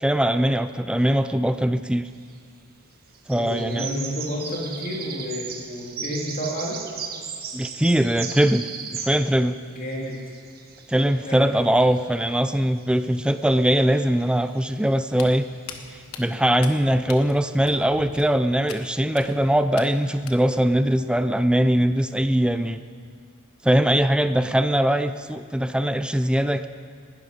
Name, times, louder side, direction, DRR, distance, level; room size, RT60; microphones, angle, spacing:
voice 1, 0.0-2.1 3.3-3.9 7.5-8.7 8.9-9.6 10.9-15.4 15.9-22.8 23.6-26.7, right 1 dB, 5° right, 10 dB, 0.4 m, -21 dB
sound 1, 2.1-2.5 3.1-9.4 9.7-16.4, right 6 dB, 45° right, 1.3 m, -38 dB
voice 2, 3.3-6.8 9.7-10.2 11.2-11.5, equal, 40° left, -3 dB, 2.8 m, -30 dB
Walk footsteps, 15.1-20.7, left 5 dB, 70° left, 1.3 m, -43 dB
19.5 x 12.0 x 5.2 m, 2.3 s
head